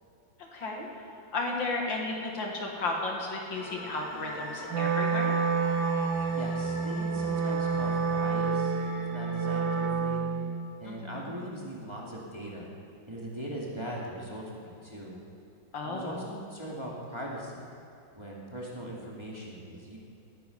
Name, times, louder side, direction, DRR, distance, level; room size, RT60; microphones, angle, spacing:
voice 1, 0.4-1.1 1.3-5.3 10.8-11.4 15.7-16.1, left 3 dB, 75° left, 0 dB, 2.6 m, -34 dB
sound 1, 3.5-9.9, left 1 dB, 20° left, 2.0 m, -40 dB
Wind instrument woodwind instrument, 4.7-10.7, right 5 dB, 75° right, 1.9 m, -29 dB
voice 2, 6.3-8.8 9.1-10.2 10.8-12.7 13.1-15.2 15.8-17.7 18.1-20.0, right 1 dB, 15° right, -4 dB, 2.2 m, -40 dB
18.0 x 11.0 x 5.3 m, 2.8 s
omnidirectional pair, 2.1 m